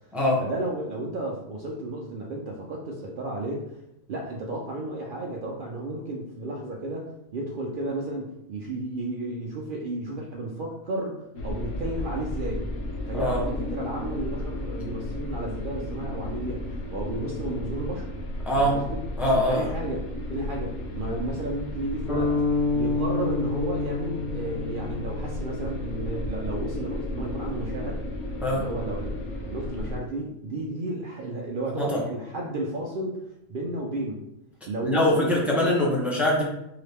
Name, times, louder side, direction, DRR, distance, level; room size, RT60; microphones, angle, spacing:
voice 1, 0.4-3.8 4.1-12.7 13.1-18.1 18.5-19.0 19.5-22.4 22.7-28.0 28.5-29.2 29.5-34.2 34.7-35.5, right 2 dB, 85° right, -1 dB, 0.4 m, -33 dB
sound 1, 11.4-30.0, left 1 dB, 85° left, 1.2 m, -34 dB
voice 2, 19.2-19.7 28.4-28.6 31.8-32.0 34.8-36.4, left 1 dB, ahead, -3 dB, 0.4 m, -23 dB
sound 2, 22.1-26.0, left 3 dB, 50° left, 1.8 m, -28 dB
3.9 x 2.8 x 3.4 m, 0.83 s
omnidirectional pair, 1.5 m